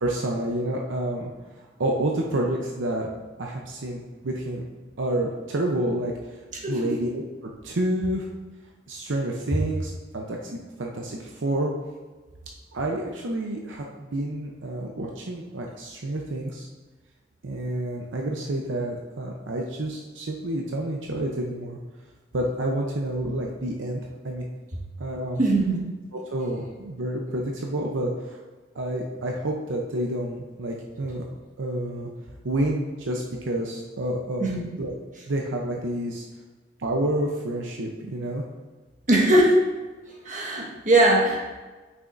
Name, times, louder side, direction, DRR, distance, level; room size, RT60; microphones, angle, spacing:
voice 1, 0.0-1.3 1.6-3.1 3.4-4.7 5.0-8.3 8.9-11.7 12.7-16.7 17.4-21.8 22.3-24.4 25.0-25.4 26.1-28.4 28.7-31.2 31.6-32.1 32.4-34.5 34.8-34.9 35.3-36.3 36.8-38.4, right 1 dB, 75° right, 0 dB, 0.7 m, -29 dB
voice 2, 25.4-25.8 34.4-34.6 39.1-39.6 40.2-41.5, right 1 dB, 45° right, -3 dB, 1.4 m, -20 dB
9.0 x 6.3 x 2.6 m, 1.3 s
head